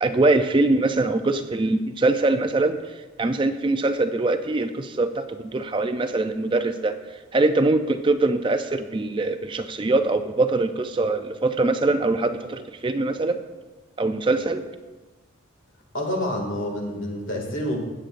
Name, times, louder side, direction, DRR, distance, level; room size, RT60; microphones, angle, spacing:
voice 1, 0.0-7.0 7.3-13.4 14.0-14.7, right 2 dB, 25° right, 8 dB, 0.4 m, -23 dB
voice 2, 15.9-17.8, left 1 dB, 70° left, 1 dB, 2.1 m, -28 dB
15.5 x 8.9 x 2.5 m, 1.2 s
head